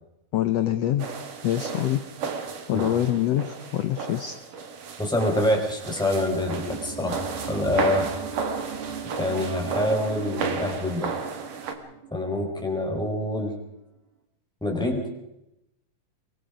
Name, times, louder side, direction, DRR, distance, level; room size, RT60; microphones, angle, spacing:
voice 1, 0.3-1.1 1.4-2.0 2.7-4.4, left 12 dB, 85° left, 12 dB, 1.4 m, -25 dB
sound 1, 1.0-11.7, right 5 dB, 65° right, 3.6 m, -33 dB
voice 2, 5.0-8.1 9.2-11.1 12.1-13.6 14.6-15.1, left 1 dB, ahead, 2 dB, 4.4 m, -26 dB
sound 2, 6.0-13.1 13.4-13.5, right 6 dB, 20° right, 1.8 m, -38 dB
24.5 x 22.5 x 5.1 m, 0.87 s
omnidirectional pair, 4.1 m